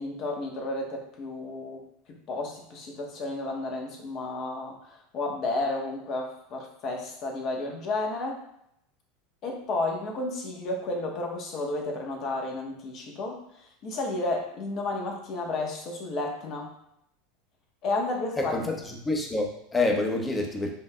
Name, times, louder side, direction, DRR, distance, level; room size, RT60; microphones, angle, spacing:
voice 1, 0.0-1.9 2.3-8.4 9.4-16.7 17.8-18.6, left 2 dB, 45° left, 1 dB, 1.0 m, -32 dB
voice 2, 18.4-20.7, left 2 dB, 20° left, 1 dB, 0.9 m, -27 dB
7.2 x 2.6 x 2.2 m, 0.77 s
hypercardioid pair, 80°, 0 cm